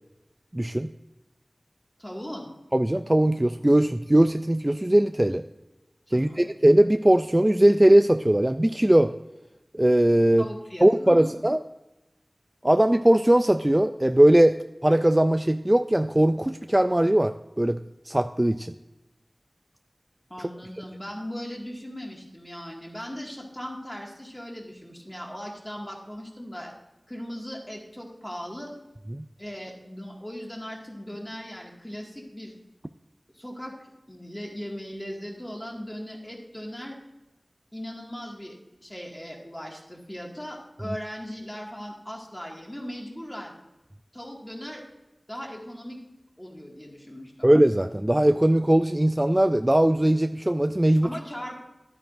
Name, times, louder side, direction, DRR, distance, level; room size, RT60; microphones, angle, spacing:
voice 1, 0.5-0.9 2.7-5.4 6.1-9.1 9.7-10.5 10.8-11.6 12.6-17.8 18.1-18.7 20.4-20.5 29.2-29.3 47.4-51.1, right 1 dB, 20° right, 9 dB, 0.3 m, -20 dB
voice 2, 2.0-2.5 6.1-6.5 10.4-11.4 20.3-26.7 27.1-28.7 29.4-32.5 33.3-33.7 34.1-37.0 37.7-43.6 44.1-44.8 45.3-46.0 46.4-47.5 51.0-51.6, equal, 15° left, -1 dB, 2.0 m, -38 dB
11.5 x 9.1 x 2.6 m, 0.99 s
wide cardioid pair, 60°, 0 cm